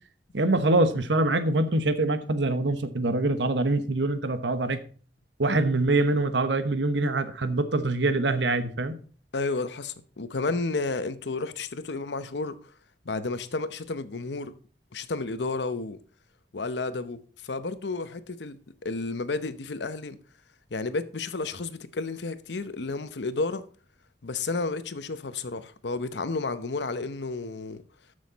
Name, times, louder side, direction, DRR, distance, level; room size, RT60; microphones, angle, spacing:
voice 1, 0.3-4.8 5.4-9.0, right 2 dB, 90° right, 1.0 m, -24 dB
voice 2, 9.3-12.7 13.0-14.5 14.9-16.0 16.5-18.6 18.8-20.2 20.7-23.7 24.2-27.8, left 3 dB, 80° left, 0.8 m, -31 dB
13.0 x 6.4 x 4.1 m
head